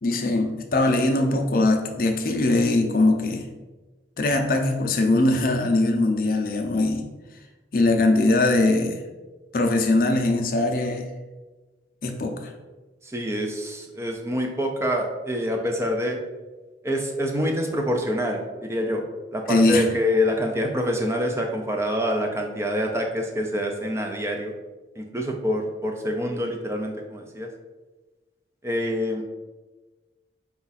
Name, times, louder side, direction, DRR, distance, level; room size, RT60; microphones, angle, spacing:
voice 1, 0.0-3.4 4.2-7.0 7.7-9.0 9.5-11.1 12.0-12.5 19.5-19.8, left 2 dB, 50° left, 3 dB, 0.5 m, -21 dB
voice 2, 13.0-16.2 16.8-19.0 19.3-24.5 25.0-27.5 28.6-29.2, equal, 15° right, 2 dB, 0.4 m, -26 dB
5.0 x 2.4 x 4.0 m, 1.2 s
head